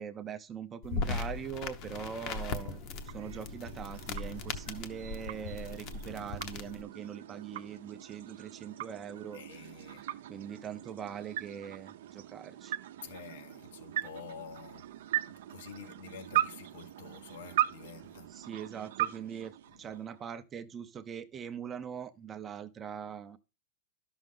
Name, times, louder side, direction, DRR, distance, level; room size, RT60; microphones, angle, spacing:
voice 1, 0.0-2.8 3.1-9.4 9.8-9.9 10.3-12.7 18.3-23.4, right 8 dB, 20° right, 0.5 m, -42 dB
sound 1, 0.8-6.8, left 4 dB, 35° left, 0.8 m, -38 dB
sound 2, 2.5-20.3, right 13 dB, 70° right, 0.6 m, -39 dB
voice 2, 9.3-10.0 13.0-14.8 15.5-18.3 19.8-20.0, left 6 dB, 75° left, 1.1 m, -48 dB
11.5 x 6.1 x 3.7 m
supercardioid pair, 165°, 0 cm